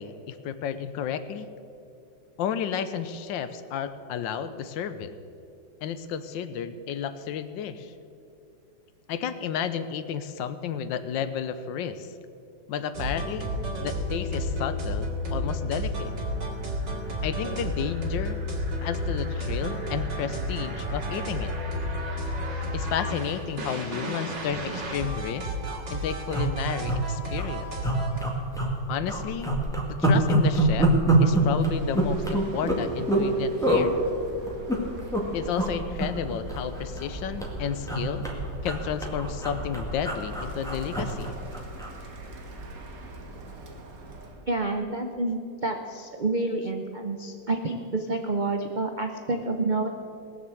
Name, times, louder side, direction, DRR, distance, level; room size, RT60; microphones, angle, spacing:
voice 1, 0.0-1.5 2.4-5.1 5.8-7.9 9.1-12.1 12.7-13.5 13.8-16.1 17.2-18.4 18.8-21.5 22.7-25.5 25.9-27.7 28.9-29.5 29.9-30.9 31.2-34.0 35.3-38.3 38.6-41.4, left 8 dB, 80° left, 12 dB, 1.4 m, -32 dB
sound 1, 12.9-28.2, equal, 65° right, 2.6 m, -31 dB
sound 2, 24.8-25.0 25.3-25.4 25.6-25.8 26.3-27.0 27.3-27.5 27.8-28.8 29.1-33.3 33.6-33.9 34.5-35.2 35.5-35.7 36.0-37.1 37.4-42.0 42.3-42.5, right 1 dB, ahead, 1.7 m, -25 dB
Bird, 31.4-44.5, right 2 dB, 50° right, 1.7 m, -41 dB
voice 2, 44.5-49.9, right 2 dB, 90° right, 4 dB, 0.4 m, -28 dB
18.5 x 7.0 x 7.8 m, 2.6 s
omnidirectional pair, 2.1 m